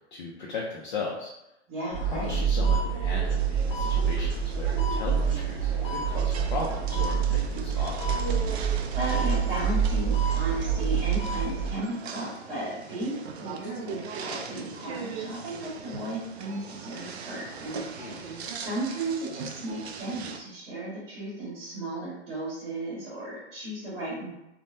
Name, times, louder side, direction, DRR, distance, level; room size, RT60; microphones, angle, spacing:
voice 1, 0.1-1.3 2.0-8.2 18.0-18.3, left 3 dB, 45° left, -3 dB, 0.5 m, -36 dB
voice 2, 1.7-2.4 8.9-24.3, right 1 dB, 50° right, -8 dB, 1.4 m, -35 dB
sound 1, 1.9-11.7, right 7 dB, 15° left, 0.8 m, -26 dB
sound 2, 3.4-20.4, right 5 dB, 65° right, 0.5 m, -40 dB
3.4 x 2.1 x 2.6 m, 0.91 s
hypercardioid pair, 170°, 35 cm